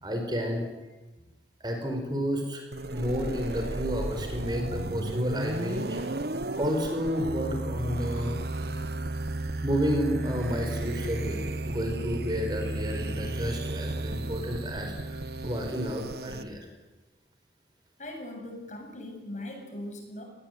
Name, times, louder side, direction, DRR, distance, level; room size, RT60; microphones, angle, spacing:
voice 1, 0.0-0.7 1.6-2.6 2.9-6.1 6.6-8.4 9.6-16.7, equal, 25° right, 4 dB, 5.2 m, -31 dB
sound 1, 2.7-16.4, right 2 dB, 60° right, 1.4 m, -34 dB
voice 2, 18.0-20.2, left 1 dB, 40° left, 3 dB, 7.8 m, -40 dB
29.5 x 21.0 x 9.5 m, 1.1 s
head